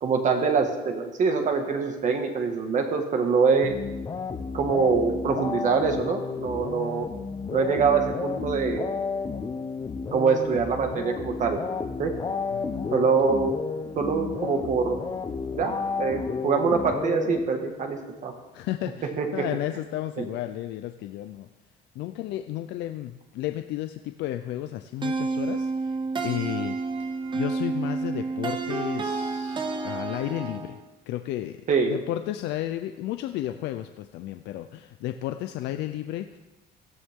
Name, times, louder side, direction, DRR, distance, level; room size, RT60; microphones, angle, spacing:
voice 1, 0.0-3.8 4.5-7.1 7.5-8.9 10.1-11.6 12.0-12.1 12.9-13.6 14.0-15.0 15.5-18.3 19.0-19.5 20.2-20.3 31.7-31.9, right 5 dB, 45° right, 4 dB, 1.9 m, -24 dB
sound 1, 3.6-17.9, left 5 dB, 25° left, 0.9 m, -32 dB
voice 2, 12.5-13.1 18.5-21.5 21.9-25.9 26.2-26.8 27.3-30.8 31.1-31.6 31.9-36.4, left 13 dB, 80° left, 8 dB, 0.6 m, -33 dB
sound 2, 25.0-30.8, right 3 dB, 25° right, 1.2 m, -29 dB
17.0 x 13.0 x 3.7 m, 1.1 s
cardioid pair, 135°, 18 cm